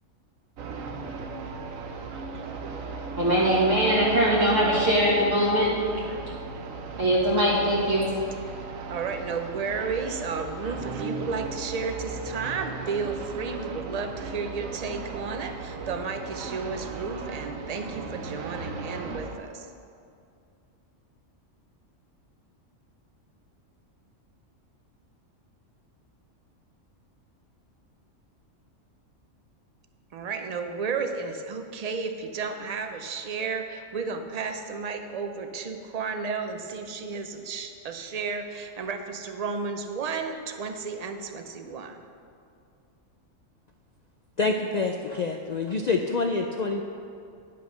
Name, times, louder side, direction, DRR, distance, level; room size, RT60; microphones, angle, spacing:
sound 1, 0.6-19.4, right 4 dB, 90° right, 1.2 m, -37 dB
voice 1, 3.2-5.7 7.0-8.0, equal, 65° right, -8 dB, 2.0 m, -21 dB
voice 2, 8.9-19.7 30.1-42.0, right 5 dB, 40° right, 6 dB, 0.6 m, -33 dB
voice 3, 44.4-46.8, left 4 dB, 85° left, 4 dB, 0.3 m, -26 dB
10.0 x 5.5 x 6.5 m, 2.4 s
omnidirectional pair, 1.3 m